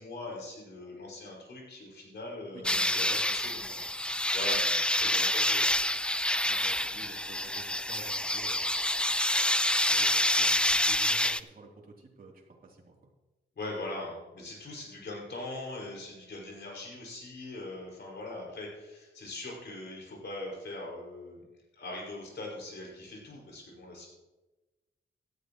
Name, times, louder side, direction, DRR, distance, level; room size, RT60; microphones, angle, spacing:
voice 1, 0.0-3.0 3.3-3.6 4.3-4.6 4.9-5.7 13.6-21.4 21.7-24.1, left 2 dB, 65° left, -2 dB, 5.5 m, -41 dB
voice 2, 2.5-3.9 4.5-5.2 6.4-8.8 9.8-13.0, right 3 dB, 50° right, -2 dB, 3.2 m, -51 dB
sound 1, 2.6-11.4, left 1 dB, 5° left, 0.4 m, -27 dB
17.0 x 13.0 x 3.1 m, 1.1 s
wide cardioid pair, 130°, 19 cm